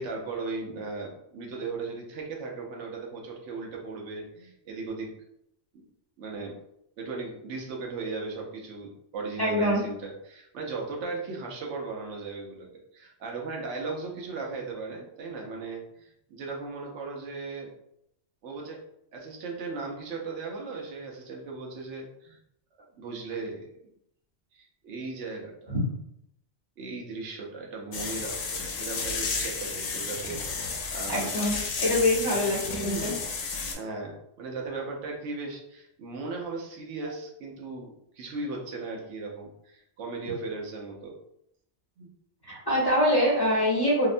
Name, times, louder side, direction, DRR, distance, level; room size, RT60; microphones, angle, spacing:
voice 1, 0.0-5.1 6.2-6.6 7.0-17.7 18.4-18.8 19.1-22.4 23.0-23.7 24.5-25.8 26.8-31.4 31.8-31.9 32.2-32.3 32.6-33.2 33.4-41.1 42.0-42.1, right 3 dB, 85° right, 0 dB, 0.9 m, -37 dB
voice 2, 9.4-9.8 25.7-25.8 31.1-33.1 42.5-44.1, left 1 dB, 25° left, -8 dB, 0.7 m, -24 dB
sound 1, 27.9-33.7, left 4 dB, 90° left, 0.9 m, -32 dB
2.8 x 2.1 x 2.5 m, 0.76 s
omnidirectional pair, 1.2 m